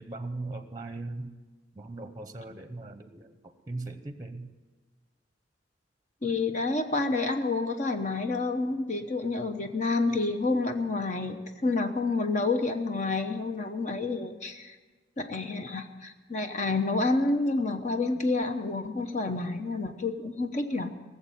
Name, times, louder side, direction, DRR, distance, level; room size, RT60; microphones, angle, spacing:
voice 1, 0.0-1.3 1.7-4.5, right 2 dB, 20° right, 9 dB, 0.8 m, -39 dB
voice 2, 6.2-11.4 11.6-14.8 15.2-20.9, left 3 dB, 40° left, 6 dB, 0.9 m, -29 dB
19.0 x 7.4 x 9.1 m, 1.3 s
head